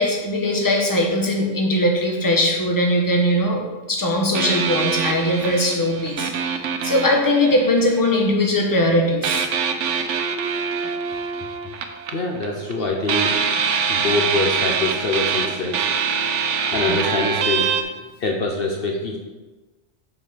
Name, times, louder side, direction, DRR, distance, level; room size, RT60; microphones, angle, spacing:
voice 1, 0.0-3.6 3.9-9.5 10.8-10.9 16.9-17.0, left 1 dB, 20° left, 0 dB, 1.1 m, -20 dB
sound 1, 4.3-8.2 9.2-12.8 13.1-17.8, right 6 dB, 85° right, 1.0 m, -24 dB
voice 2, 12.1-13.4 13.9-15.9 16.7-17.7 18.2-19.2, left 2 dB, 55° left, 1 dB, 1.0 m, -24 dB
7.2 x 4.2 x 6.6 m, 1.2 s
omnidirectional pair, 1.2 m